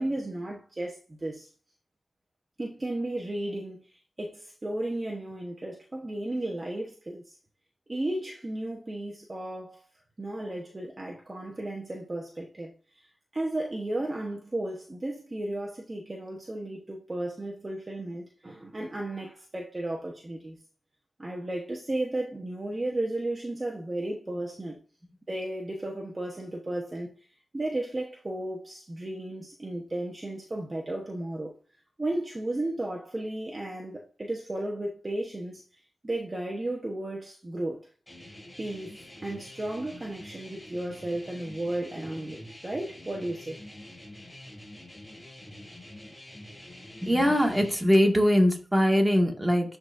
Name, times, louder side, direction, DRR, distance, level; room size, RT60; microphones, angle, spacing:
voice 1, 0.0-1.5 2.6-3.9 4.2-7.4 7.9-9.8 10.2-13.1 13.3-20.6 21.2-24.8 25.3-27.1 27.5-31.5 32.0-35.6 36.0-37.9 38.6-43.6, right 1 dB, 25° right, 1.1 m, -34 dB
sound 1, 38.1-47.8, left 1 dB, 10° left, 3.7 m, -46 dB
voice 2, 47.0-49.8, equal, 10° right, 1.7 m, -22 dB
11.0 x 4.0 x 2.6 m
wide cardioid pair, 90°, 0 cm